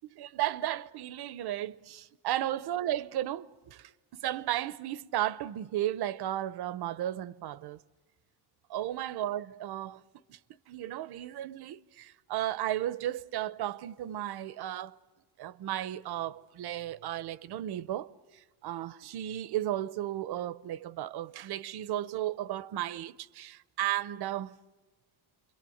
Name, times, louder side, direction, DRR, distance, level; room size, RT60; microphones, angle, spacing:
voice 1, 0.1-7.8 8.7-10.0 10.3-10.4 10.7-15.0 15.4-18.1 18.6-24.6, right 13 dB, 65° right, 0.8 m, -34 dB
28.0 x 23.0 x 7.9 m
cardioid pair, 160°, 41 cm